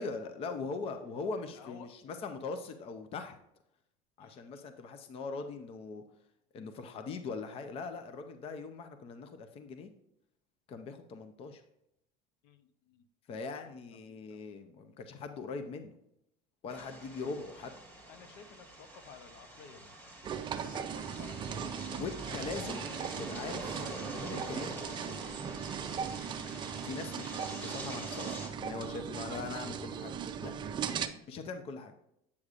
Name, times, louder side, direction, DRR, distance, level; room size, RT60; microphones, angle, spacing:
voice 1, 0.0-3.3 4.2-6.0 6.5-9.9 10.7-11.6 13.3-15.9 16.6-17.7 22.0-22.9 23.2-23.7 24.3-25.2 26.8-30.5 31.3-31.9, left 4 dB, 35° left, 8 dB, 0.6 m, -41 dB
voice 2, 1.5-2.2 4.2-4.7 12.4-13.0 13.5-14.6 18.1-19.9 20.5-22.8 23.6-23.8 25.9-26.5 30.9-31.2, left 6 dB, 65° left, 10 dB, 0.8 m, -55 dB
sound 1, 16.7-28.5, right 1 dB, 10° left, 1.5 m, -46 dB
sound 2, 20.2-31.1, right 7 dB, 25° right, 0.5 m, -38 dB
8.4 x 6.5 x 2.5 m, 0.79 s
cardioid pair, 145°, 18 cm